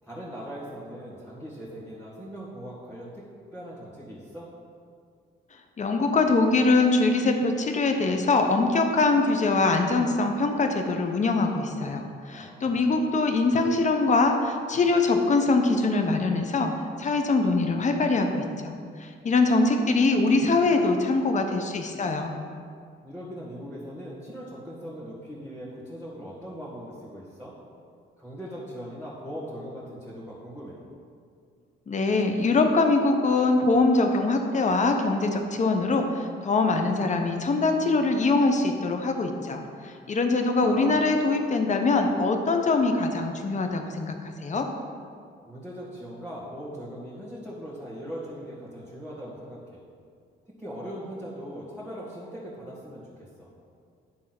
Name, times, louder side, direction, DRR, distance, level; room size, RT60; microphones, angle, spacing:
voice 1, 0.0-3.2 3.5-4.5 12.3-12.9 23.0-27.5 28.2-30.8 40.6-41.0 45.4-49.8 50.6-53.5, equal, 5° right, -10 dB, 2.0 m, -40 dB
voice 2, 5.8-16.7 17.0-22.3 31.9-44.7, left 3 dB, 35° left, 5 dB, 0.9 m, -23 dB
10.5 x 3.6 x 6.0 m, 2.2 s
cardioid pair, 90°, 20 cm